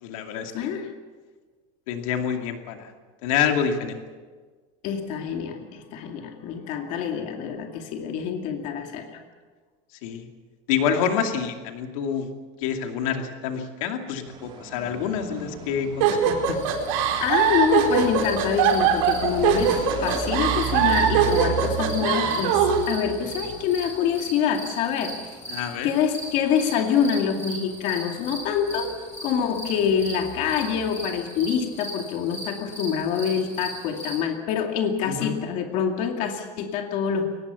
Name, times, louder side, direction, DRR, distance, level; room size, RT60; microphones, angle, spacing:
voice 1, 0.0-0.7 1.9-2.9 3.2-4.0 10.0-10.3 10.7-12.3 12.6-16.6 25.5-25.9 35.1-35.4, left 7 dB, 85° left, 4 dB, 2.5 m, -27 dB
voice 2, 0.5-0.9 4.8-9.1 17.2-25.2 25.8-37.2, left 7 dB, 45° left, 3 dB, 2.4 m, -26 dB
sound 1, 14.3-31.7, right 8 dB, 30° right, 2.9 m, -37 dB
sound 2, 16.0-22.8, right 8 dB, 75° right, 4.5 m, -21 dB
sound 3, 16.5-34.2, right 1 dB, 15° left, 6.9 m, -39 dB
23.0 x 19.5 x 7.0 m, 1.4 s
cardioid pair, 175°, 17 cm